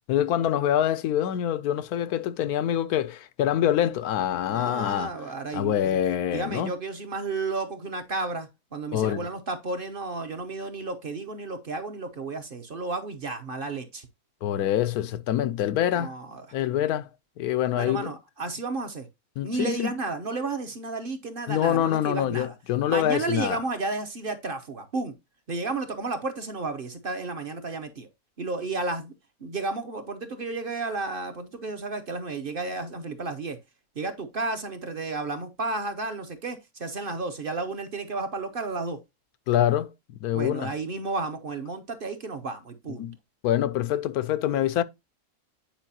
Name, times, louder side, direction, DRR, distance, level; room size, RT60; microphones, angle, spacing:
voice 1, 0.1-5.1 5.5-6.7 8.9-9.3 14.4-16.1 16.5-17.1 17.4-18.1 19.4-19.9 21.5-23.6 39.5-39.9 40.2-40.7 42.9-43.2 43.4-44.8, left 11 dB, 90° left, 1.1 m, -25 dB
voice 2, 4.5-6.0 6.3-14.1 15.9-16.6 17.8-19.1 19.4-22.5 22.9-25.1 25.5-28.1 28.4-29.1 29.4-33.6 33.9-39.0 40.3-43.1, right 3 dB, 45° right, 0.9 m, -32 dB
8.9 x 4.8 x 2.8 m
omnidirectional pair, 1.6 m